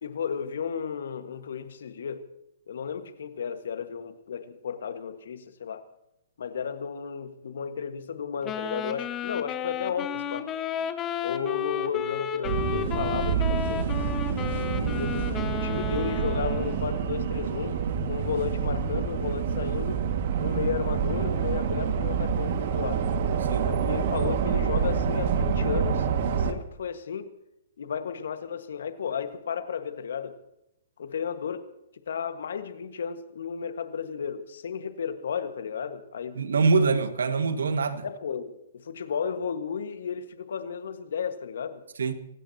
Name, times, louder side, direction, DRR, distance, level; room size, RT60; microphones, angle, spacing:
voice 1, 0.0-2.2 2.7-5.8 6.4-10.5 11.2-13.9 14.8-17.8 18.1-20.0 20.4-23.1 23.6-26.1 26.3-27.3 27.8-30.4 31.0-31.7 31.9-36.4 38.0-41.8, left 7 dB, 70° left, 1.6 m, -33 dB
Wind instrument woodwind instrument, 8.4-16.9, left 8 dB, 20° left, 1.4 m, -33 dB
sound 1, 12.4-26.5, right 6 dB, 55° right, 2.0 m, -27 dB
voice 2, 36.3-38.0 42.0-42.1, right 4 dB, 80° right, 1.8 m, -24 dB
27.0 x 16.5 x 2.9 m
hypercardioid pair, 130°, 0 cm